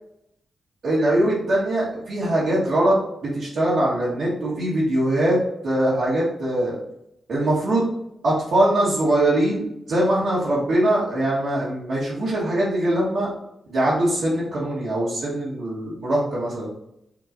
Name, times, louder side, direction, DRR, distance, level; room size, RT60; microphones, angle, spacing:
voice 1, 0.8-5.4 5.6-6.8 7.3-7.8 8.2-13.3 13.7-16.7, right 1 dB, 75° right, -9 dB, 1.4 m, -22 dB
5.9 x 3.0 x 2.6 m, 0.81 s
supercardioid pair, 40°, 0 cm